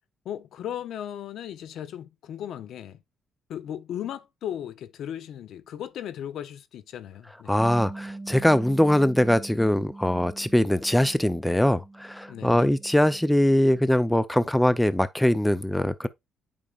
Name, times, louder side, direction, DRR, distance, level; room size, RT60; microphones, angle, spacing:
voice 1, 0.2-3.0 3.5-7.6 12.3-12.7, left 10 dB, 75° left, 0.7 m, -36 dB
voice 2, 7.5-16.1, left 1 dB, 5° left, 0.5 m, -22 dB
Bass guitar, 7.6-13.8, right 2 dB, 10° right, 1.3 m, -43 dB
8.5 x 5.2 x 2.4 m
cardioid pair, 90°, 0 cm